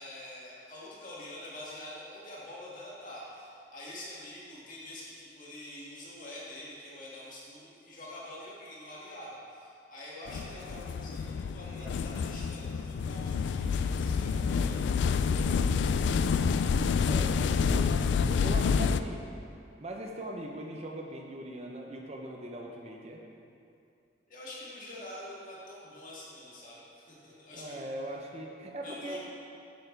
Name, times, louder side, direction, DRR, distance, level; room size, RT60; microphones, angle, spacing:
voice 1, 0.0-14.9 15.3-15.6 24.3-27.9 28.8-29.2, left 1 dB, 45° left, -7 dB, 2.2 m, -46 dB
sound 1, 10.3-19.0, left 5 dB, 85° left, 0.3 m, -28 dB
voice 2, 14.9-16.4 17.1-18.0 18.3-19.2 19.8-23.2 27.5-29.2, right 1 dB, 35° right, 1 dB, 0.7 m, -41 dB
9.3 x 9.1 x 3.4 m, 2.5 s
head